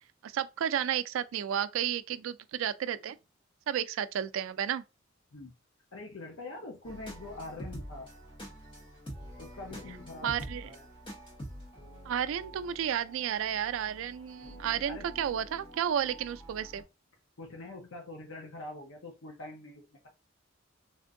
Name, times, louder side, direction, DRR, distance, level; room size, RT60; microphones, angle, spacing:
voice 1, 0.2-3.2 3.7-4.8 10.2-10.7 12.0-16.8, right 9 dB, 80° right, 0.3 m, -32 dB
voice 2, 5.9-8.1 9.4-10.8 14.9-15.1 17.4-20.1, left 2 dB, 80° left, 0.7 m, -44 dB
sound 1, 6.8-16.8, equal, 25° left, 1.0 m, -46 dB
3.5 x 2.5 x 2.5 m
head